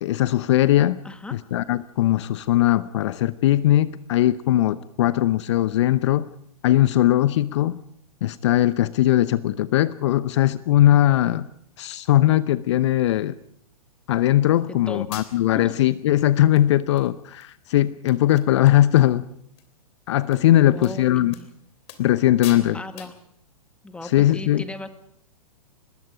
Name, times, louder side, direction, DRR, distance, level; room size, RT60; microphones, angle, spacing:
voice 1, 0.0-1.0 1.3-6.3 6.6-7.8 8.2-11.4 11.8-13.4 14.1-19.3 20.1-21.3 22.0-22.8 24.0-24.6, left 13 dB, 50° left, 16 dB, 0.8 m, -19 dB
voice 2, 1.0-1.4 14.9-15.1 15.5-15.7 20.7-21.0 21.4-21.5 22.7-23.1 23.8-24.9, left 2 dB, 5° left, 9 dB, 1.7 m, -36 dB
sound 1, 14.6-14.7 15.1-15.6 16.2-16.3 16.6-17.1 17.4-17.5 17.8-17.9 18.1-19.1 19.4-19.6 20.3-20.4 20.8-20.9 21.3-21.5 21.9-22.2 22.4-22.7 23.0-23.2, left 11 dB, 35° left, 3.2 m, -42 dB
25.5 x 21.5 x 5.1 m, 0.67 s
figure-of-eight pair, 110°, 19 cm